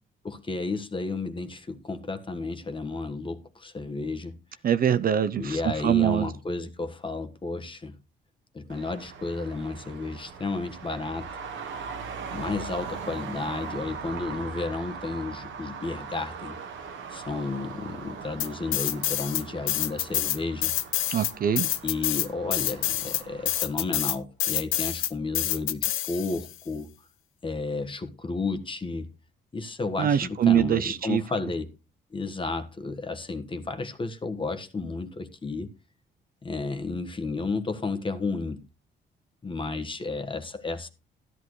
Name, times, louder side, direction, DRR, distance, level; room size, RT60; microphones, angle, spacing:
voice 1, 0.2-4.4 5.4-8.0 8.5-11.4 12.3-16.6 17.1-20.7 21.8-26.9 27.4-29.1 29.5-31.7 32.1-35.7 36.4-38.6 39.4-40.9, left 3 dB, 25° left, 1.4 m, -32 dB
voice 2, 4.6-6.3 21.1-21.7 30.0-31.2, right 9 dB, 50° right, 0.5 m, -23 dB
Traffic noise roadway noise, 8.7-23.6, right 5 dB, 75° right, 1.5 m, -40 dB
sound 1, 18.4-19.4 19.7-26.5, left 13 dB, 85° left, 0.7 m, -27 dB
13.5 x 10.5 x 3.2 m
cardioid pair, 90°, 20 cm